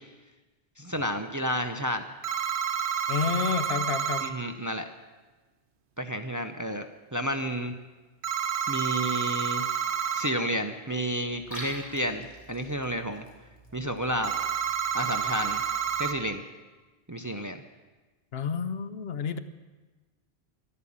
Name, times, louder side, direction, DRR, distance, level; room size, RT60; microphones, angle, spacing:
voice 1, 0.8-2.0 4.2-4.9 6.0-6.8 7.1-7.7 8.7-9.6 10.1-13.2 13.7-14.4 14.9-15.6 16.0-16.4 17.1-17.6, equal, 20° right, 7 dB, 0.6 m, -31 dB
sound 1, 2.2-4.3 8.2-10.3 14.2-16.1, right 7 dB, 85° right, 1.1 m, -29 dB
voice 2, 3.1-4.2 18.3-19.4, left 6 dB, 70° left, 11 dB, 1.0 m, -30 dB
Liquid, 11.3-16.3, equal, 35° left, 3.5 m, -46 dB
12.5 x 11.0 x 8.6 m, 1.2 s
omnidirectional pair, 1.1 m